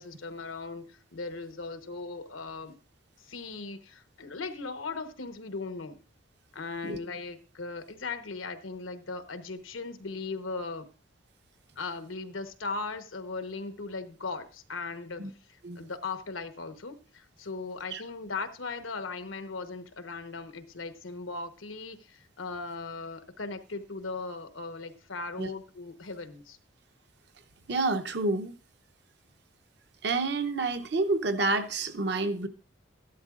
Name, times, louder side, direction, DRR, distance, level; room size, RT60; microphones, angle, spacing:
voice 1, 0.0-2.8 3.2-6.0 6.5-10.9 11.8-15.3 15.8-26.6, left 3 dB, 90° left, 1.1 m, -38 dB
voice 2, 27.7-28.5 30.0-32.5, right 3 dB, 55° right, 0.8 m, -29 dB
13.5 x 11.5 x 2.5 m
head